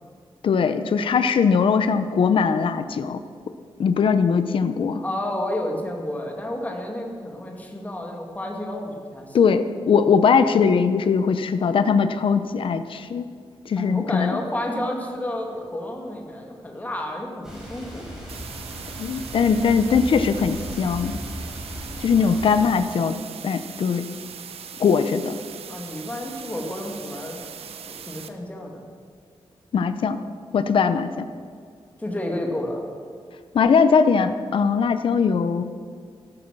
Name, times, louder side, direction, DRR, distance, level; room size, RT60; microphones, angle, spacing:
voice 1, 0.4-3.2 3.8-5.0 9.3-13.3 13.7-14.4 19.0-21.2 22.0-23.2 23.4-24.0 24.8-25.4 29.7-30.2 30.5-31.3 33.5-35.6, left 6 dB, 60° left, 10 dB, 0.7 m, -20 dB
voice 2, 5.0-9.4 13.8-18.1 22.2-22.5 25.7-27.4 27.9-28.9 32.0-32.8, left 1 dB, 15° left, 1 dB, 2.4 m, -31 dB
sound 1, 17.4-22.7, right 1 dB, 5° right, 5.2 m, -36 dB
sound 2, 18.3-28.3, right 7 dB, 90° right, 0.9 m, -40 dB
14.5 x 13.0 x 6.1 m, 2.1 s
wide cardioid pair, 155°, 10 cm